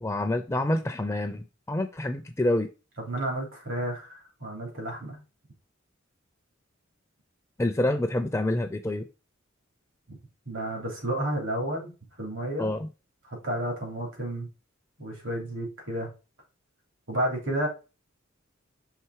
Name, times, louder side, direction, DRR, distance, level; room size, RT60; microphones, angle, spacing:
voice 1, 0.0-2.7 7.6-9.1 12.6-12.9, left 1 dB, 15° left, 6 dB, 0.4 m, -27 dB
voice 2, 3.1-5.2 10.5-11.9 12.2-12.7 13.3-14.5 15.0-16.1 17.1-17.7, right 1 dB, 80° right, 0 dB, 3.2 m, -31 dB
5.7 x 3.6 x 4.7 m, 0.31 s
head